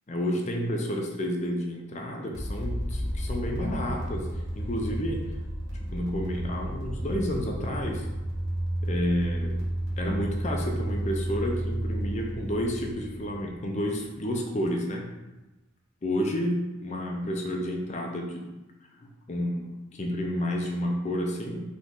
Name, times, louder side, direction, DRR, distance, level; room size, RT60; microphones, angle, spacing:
voice 1, 0.1-4.3 4.5-5.2 5.9-8.1 8.8-9.6 10.0-15.1 16.0-18.5 19.3-21.6, equal, 30° left, 1 dB, 0.5 m, -30 dB
sound 1, 2.3-14.0, right 1 dB, 55° right, 1.0 m, -32 dB
3.9 x 3.0 x 3.6 m, 1.0 s
head